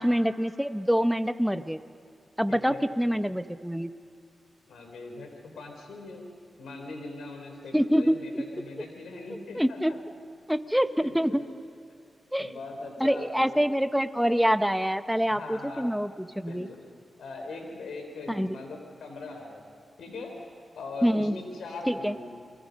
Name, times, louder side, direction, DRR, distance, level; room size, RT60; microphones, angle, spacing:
voice 1, 0.0-1.8 2.4-3.9 7.7-8.4 9.5-9.9 10.5-11.4 12.3-12.5 13.0-16.7 18.3-18.6 21.0-21.4 21.9-22.1, equal, ahead, 10 dB, 1.1 m, -26 dB
voice 2, 2.5-2.9 4.7-5.3 5.5-6.3 6.6-10.0 11.0-11.5 12.4-13.7 15.3-15.9 16.4-16.8 17.2-19.6 20.0-22.5, left 3 dB, 85° left, 3 dB, 4.3 m, -41 dB
29.0 x 23.0 x 5.4 m, 2.5 s
cardioid pair, 50°, 0 cm